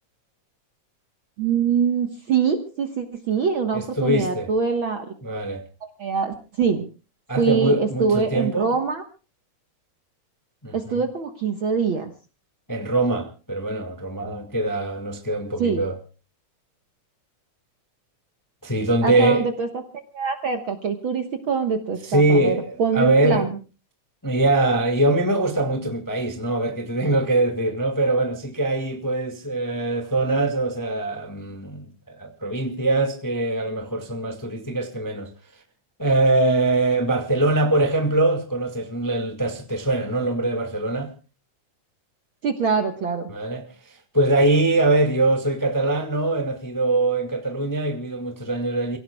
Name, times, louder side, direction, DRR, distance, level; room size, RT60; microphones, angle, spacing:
voice 1, 1.4-5.1 5.8-6.8 7.4-9.0 10.7-12.1 15.6-15.8 19.0-19.7 20.1-23.5 42.4-43.3, right 6 dB, 55° right, 1.7 m, -24 dB
voice 2, 3.7-4.5 5.2-5.6 7.3-8.7 10.6-11.0 12.7-16.0 18.6-19.4 22.1-23.5 24.2-35.3 36.0-41.1 43.3-49.0, right 2 dB, 10° left, 1.3 m, -23 dB
29.0 x 17.0 x 2.3 m
omnidirectional pair, 3.5 m